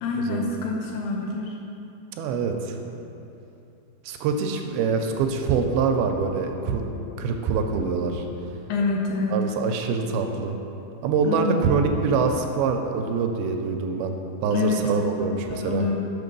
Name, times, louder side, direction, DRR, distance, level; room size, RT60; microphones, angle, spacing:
voice 1, 0.0-1.5 8.7-9.4 11.2-11.7 14.5-14.9 15.2-16.0, left 3 dB, 80° left, 0 dB, 2.2 m, -27 dB
voice 2, 2.2-2.8 4.1-6.8 7.2-8.3 9.3-10.6 11.0-14.2 14.4-15.9, right 5 dB, 85° right, 4 dB, 2.4 m, -24 dB
6.4 x 5.9 x 5.3 m, 2.8 s
omnidirectional pair, 4.4 m